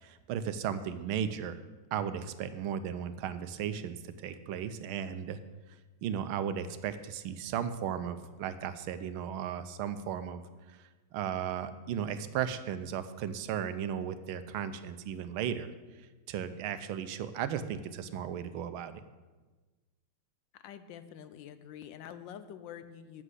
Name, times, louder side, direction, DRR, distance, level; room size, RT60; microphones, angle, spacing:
voice 1, 0.0-1.6 1.9-5.4 6.0-10.4 10.8-15.7 16.3-19.0, right 8 dB, 90° right, 11 dB, 1.5 m, -35 dB
voice 2, 20.5-23.2, left 9 dB, 75° left, 12 dB, 1.2 m, -47 dB
7.7 x 7.4 x 7.9 m, 1.3 s
omnidirectional pair, 2.2 m